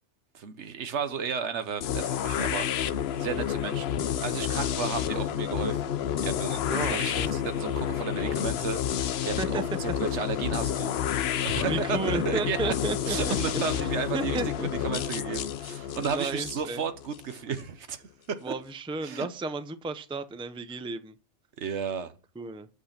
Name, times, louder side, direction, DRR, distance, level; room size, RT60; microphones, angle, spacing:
voice 1, 0.3-6.6 6.9-11.0 11.4-12.7 13.1-18.0 18.3-18.5 19.0-19.3 21.6-22.1, right 6 dB, 85° right, 1.3 m, -33 dB
sound 1, 1.8-17.6, left 9 dB, 70° left, 0.8 m, -30 dB
voice 2, 6.7-7.4 8.2-8.4 9.4-9.6 11.6-13.4 13.7-13.9 14.1-14.7 16.0-16.8 18.4-21.1 22.4-22.7, right 3 dB, 5° right, 0.4 m, -33 dB
8.2 x 6.5 x 5.8 m
omnidirectional pair, 1.2 m